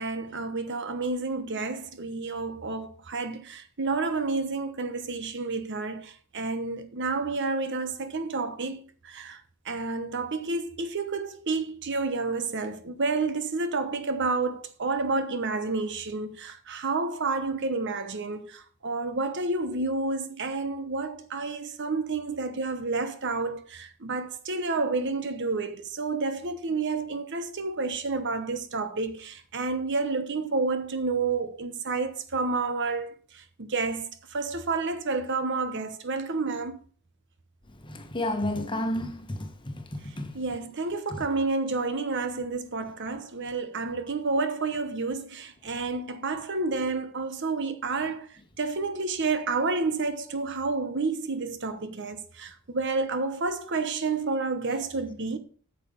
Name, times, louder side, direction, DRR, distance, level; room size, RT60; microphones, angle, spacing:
voice 1, 0.0-8.8 9.0-33.1 33.3-36.8 40.3-48.3 48.6-55.4, right 3 dB, 55° right, 1.0 m, -30 dB
voice 2, 37.8-40.3 41.1-41.2, left 1 dB, 20° left, 1.3 m, -31 dB
9.2 x 6.7 x 5.2 m
head